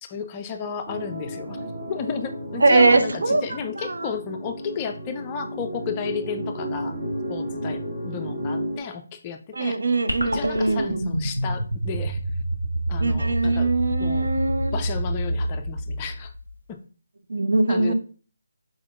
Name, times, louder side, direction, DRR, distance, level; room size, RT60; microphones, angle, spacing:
voice 1, 0.0-7.0 7.3-9.8 10.2-12.2 12.9-13.7 14.0-14.3 14.7-16.3 16.7-16.8 17.7-17.9, left 6 dB, 20° left, 5 dB, 0.3 m, -33 dB
sound 1, 0.9-8.8, equal, 45° right, 1.8 m, -32 dB
voice 2, 2.6-3.4 3.9-4.0 9.5-11.0 13.0-14.8 17.3-17.9, right 3 dB, 70° right, 8 dB, 0.6 m, -21 dB
sound 2, 10.1-16.6, right 1 dB, 85° right, 1.0 m, -27 dB
4.9 x 4.1 x 2.5 m, 0.39 s
figure-of-eight pair, 155°, 0 cm